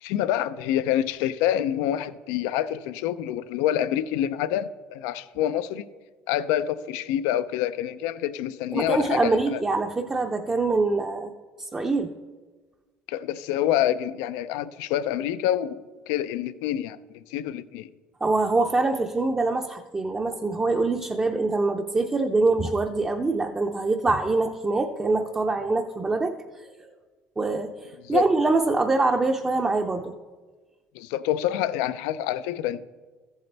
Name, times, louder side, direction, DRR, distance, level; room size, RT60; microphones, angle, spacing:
voice 1, 0.0-5.9 6.3-9.6 13.1-17.9 28.0-28.3 30.9-32.8, left 11 dB, 85° left, 14 dB, 0.4 m, -27 dB
voice 2, 8.7-11.3 11.6-12.1 18.2-26.4 26.8-26.9 27.4-30.2, right 3 dB, 15° right, 3 dB, 0.5 m, -24 dB
14.0 x 8.0 x 3.3 m, 1.4 s
cardioid pair, 125°, 5 cm